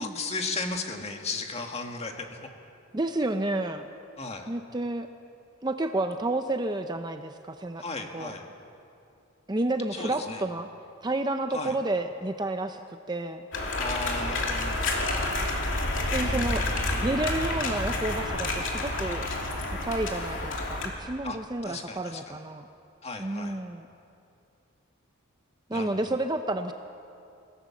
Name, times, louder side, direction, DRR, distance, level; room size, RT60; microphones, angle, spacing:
voice 1, 0.0-2.5 4.2-4.5 7.8-8.5 9.9-10.4 11.5-11.8 13.7-15.2 16.2-17.5 21.2-22.4 23.0-23.6 25.7-26.2, left 3 dB, 30° left, 3 dB, 1.8 m, -36 dB
voice 2, 2.9-3.9 4.5-5.1 5.6-7.8 8.1-8.3 9.5-10.7 11.0-13.4 16.1-16.7 17.0-19.3 19.8-22.7 23.2-23.9 25.7-26.7, right 2 dB, 20° right, 7 dB, 0.6 m, -30 dB
sound 1, 13.5-20.9, left 2 dB, 60° left, 3.0 m, -29 dB
25.5 x 17.0 x 7.2 m, 2.6 s
head